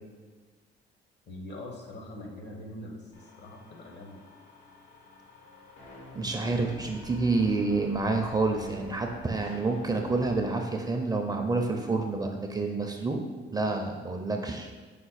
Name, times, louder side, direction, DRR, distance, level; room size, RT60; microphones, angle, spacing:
voice 1, 1.3-4.2, left 1 dB, 65° left, 1 dB, 0.9 m, -43 dB
sound 1, 3.1-10.4, left 1 dB, 80° left, 1.2 m, -49 dB
voice 2, 6.1-13.2 13.5-14.7, right 3 dB, 20° right, 3 dB, 0.4 m, -28 dB
5.1 x 2.2 x 4.0 m, 1.4 s
cardioid pair, 90°, 20 cm